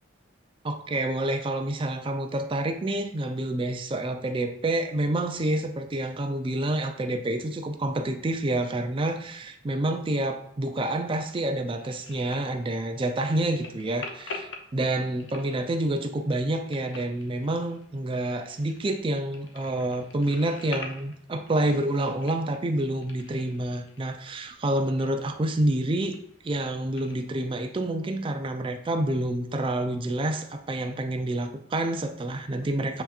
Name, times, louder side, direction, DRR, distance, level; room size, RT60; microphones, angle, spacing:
voice 1, 0.6-26.2 26.4-33.0, right 1 dB, 25° right, 6 dB, 0.4 m, -28 dB
sound 1, 11.8-27.2, left 3 dB, 60° left, 0.6 m, -46 dB
7.8 x 2.8 x 2.4 m, 0.69 s
head